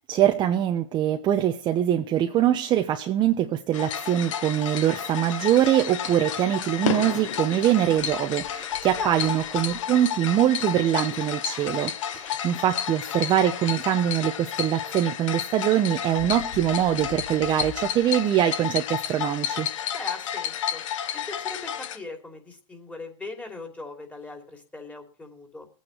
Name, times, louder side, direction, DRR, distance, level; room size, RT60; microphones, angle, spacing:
voice 1, 0.1-19.7, right 11 dB, 25° right, 0.9 m, -23 dB
sound 1, 3.7-22.0, left 9 dB, 65° left, 1.2 m, -31 dB
voice 2, 9.0-9.3 19.9-20.8 21.1-25.7, left 2 dB, 10° left, 2.9 m, -39 dB
21.5 x 9.0 x 3.1 m
hypercardioid pair, 130°, 18 cm